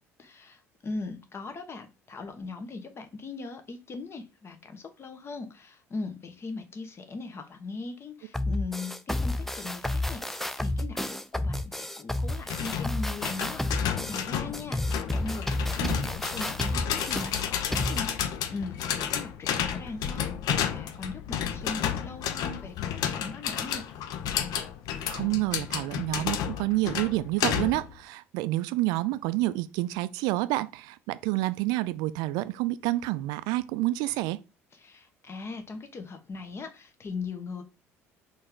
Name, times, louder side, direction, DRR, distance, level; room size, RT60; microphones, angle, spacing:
voice 1, 0.2-20.3 20.6-23.8 34.7-37.6, left 3 dB, 35° left, 1.1 m, -40 dB
sound 1, 8.3-18.0, left 1 dB, 5° left, 0.4 m, -31 dB
sound 2, 12.5-27.9, left 9 dB, 55° left, 0.6 m, -32 dB
voice 2, 25.1-34.4, right 17 dB, 60° right, 0.4 m, -28 dB
4.2 x 3.4 x 3.8 m
figure-of-eight pair, 60°, 8 cm